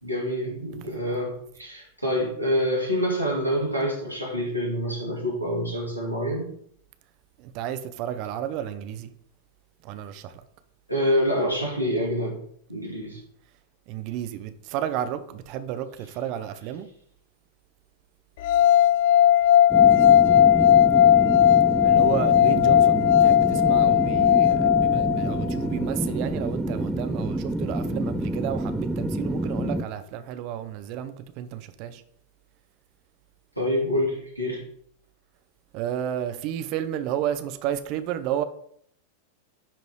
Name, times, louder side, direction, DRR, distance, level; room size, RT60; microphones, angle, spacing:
voice 1, 0.0-6.5 10.9-12.4 12.7-13.2 33.6-34.6, equal, 90° left, 2.6 m, -26 dB
voice 2, 7.4-9.1 9.8-10.4 13.9-16.9 21.8-32.0 35.7-38.4, right 10 dB, 45° right, 0.6 m, -32 dB
sound 1, 18.4-25.5, left 11 dB, 50° left, 0.4 m, -17 dB
sound 2, 19.7-29.8, right 1 dB, 5° right, 0.5 m, -28 dB
10.0 x 3.9 x 3.2 m
figure-of-eight pair, 90°, 0 cm